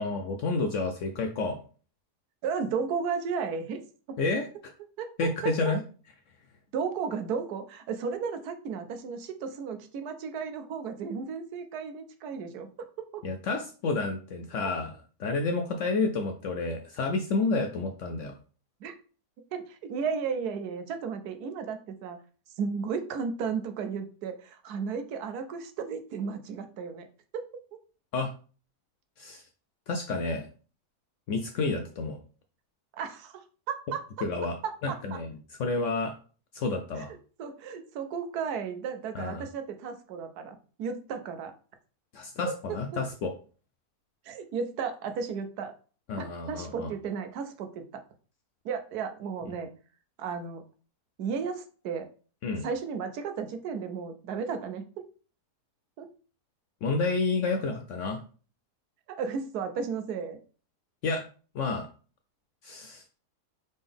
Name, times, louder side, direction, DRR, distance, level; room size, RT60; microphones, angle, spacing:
voice 1, 0.0-1.6 4.2-4.7 5.2-5.8 13.2-18.3 28.1-28.3 29.2-29.5 29.9-30.5 31.3-32.2 34.2-34.6 34.8-36.2 36.5-37.1 39.1-39.5 42.1-43.3 46.1-46.9 52.4-52.7 56.8-58.2 61.0-61.2 61.5-61.9 62.6-63.0, left 3 dB, 70° left, 6 dB, 0.7 m, -30 dB
voice 2, 2.4-4.2 5.0-5.3 5.6-5.7 6.7-13.2 18.8-19.0 19.5-22.2 22.6-27.1 27.3-27.8 33.0-34.0 34.9-35.2 37.4-41.5 42.5-42.6 44.2-45.7 46.5-48.0 48.6-49.7 50.2-50.6 51.2-52.1 52.6-54.8 56.0-56.1 59.1-60.4, right 6 dB, 75° right, 8 dB, 1.2 m, -34 dB
3.9 x 3.7 x 3.5 m, 0.39 s
omnidirectional pair, 1.7 m